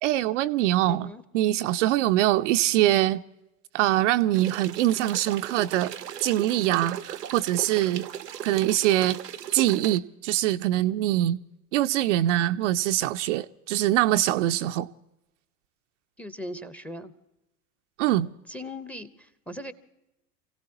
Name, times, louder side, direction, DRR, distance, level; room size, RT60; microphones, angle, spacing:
voice 1, 0.0-3.2 3.7-5.9 6.2-8.1 8.4-9.2 9.5-11.4 11.7-14.9 18.0-18.3, right 14 dB, 50° right, 0.6 m, -23 dB
voice 2, 0.9-1.2 16.2-17.1 18.5-19.7, left 1 dB, 5° left, 0.8 m, -39 dB
sound 1, 4.3-10.0, right 10 dB, 80° right, 0.8 m, -37 dB
29.0 x 17.0 x 2.9 m
figure-of-eight pair, 85°, 47 cm